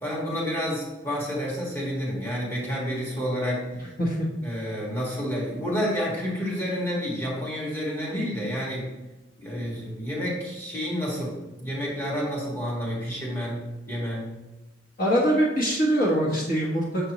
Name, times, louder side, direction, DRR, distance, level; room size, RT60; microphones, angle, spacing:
voice 1, 0.0-3.9 4.4-8.9 9.4-11.3 11.6-14.3, equal, 10° left, -5 dB, 1.6 m, -29 dB
voice 2, 15.0-17.1, equal, 45° left, -4 dB, 1.2 m, -23 dB
6.6 x 5.2 x 3.0 m, 1.1 s
head